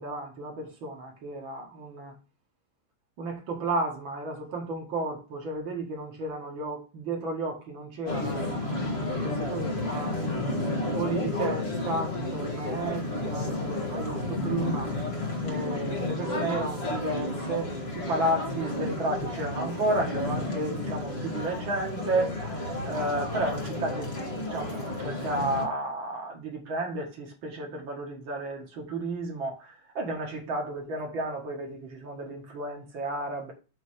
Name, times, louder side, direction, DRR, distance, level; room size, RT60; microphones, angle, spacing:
voice 1, 0.0-2.1 3.2-10.2 10.9-14.9 15.4-17.7 17.9-33.5, right 2 dB, 85° right, 2.7 m, -33 dB
sound 1, 8.1-25.7, left 1 dB, 35° left, 1.8 m, -31 dB
7.9 x 3.3 x 6.3 m
omnidirectional pair, 2.1 m